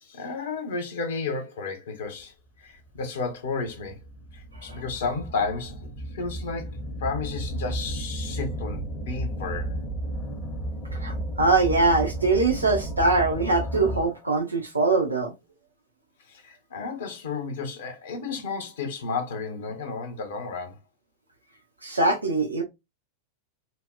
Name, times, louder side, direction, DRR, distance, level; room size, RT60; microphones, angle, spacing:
voice 1, 0.0-2.3 2.6-4.0 4.3-9.7 16.3-20.8, left 4 dB, 60° left, 0.8 m, -32 dB
sound 1, 2.9-3.0 3.6-14.3, right 1 dB, 25° left, 0.7 m, -33 dB
voice 2, 11.0-15.3 21.8-22.6, right 3 dB, 80° right, 0.6 m, -22 dB
4.1 x 2.1 x 2.3 m
figure-of-eight pair, 90°, 0 cm